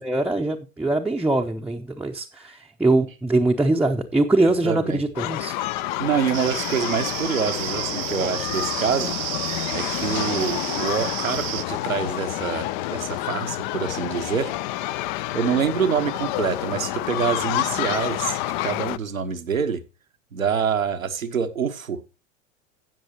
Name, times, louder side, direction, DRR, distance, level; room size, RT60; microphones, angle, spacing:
voice 1, 0.0-5.6, right 2 dB, 5° right, 0.7 m, -22 dB
voice 2, 4.4-5.0 6.0-9.1 9.7-14.5 15.3-19.8 20.3-22.0, right 7 dB, 85° right, 1.1 m, -26 dB
sound 1, 5.2-19.0, left 16 dB, 40° left, 0.4 m, -29 dB
sound 2, 6.3-11.6, right 17 dB, 50° right, 0.8 m, -31 dB
16.5 x 6.3 x 2.9 m
figure-of-eight pair, 90°, 39 cm